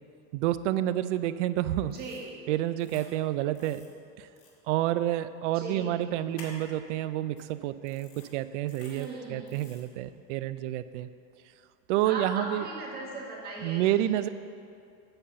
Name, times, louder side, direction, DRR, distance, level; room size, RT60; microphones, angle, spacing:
voice 1, 0.3-2.0 2.5-3.8 4.2-4.3 4.7-11.1 11.9-12.7 13.6-14.3, right 13 dB, 90° right, 14 dB, 0.5 m, -29 dB
sound 1, 1.9-2.2 2.8-3.1 3.5-3.9 4.4-4.5 6.3-6.7 7.4-7.5 7.9-8.3 8.7-9.1 9.5-9.8, left 4 dB, 70° left, 2.1 m, -51 dB
voice 2, 1.9-2.3 5.5-6.0 8.9-9.5 12.0-13.9, right 2 dB, 25° right, -3 dB, 1.7 m, -38 dB
9.1 x 5.6 x 6.8 m, 2.5 s
cardioid pair, 170°, 35 cm